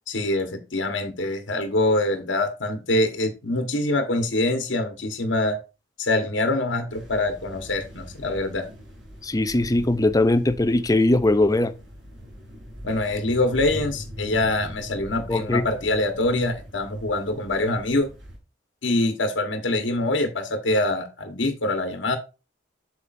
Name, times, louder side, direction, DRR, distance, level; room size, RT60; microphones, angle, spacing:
voice 1, 0.1-5.6 6.0-8.7 12.8-18.1 18.8-22.2, left 2 dB, 85° left, 1.3 m, -24 dB
sound 1, 6.9-18.4, equal, 70° right, 3.8 m, -41 dB
voice 2, 9.2-11.7 15.3-15.6, left 2 dB, 20° left, 0.5 m, -20 dB
8.2 x 6.9 x 2.6 m
head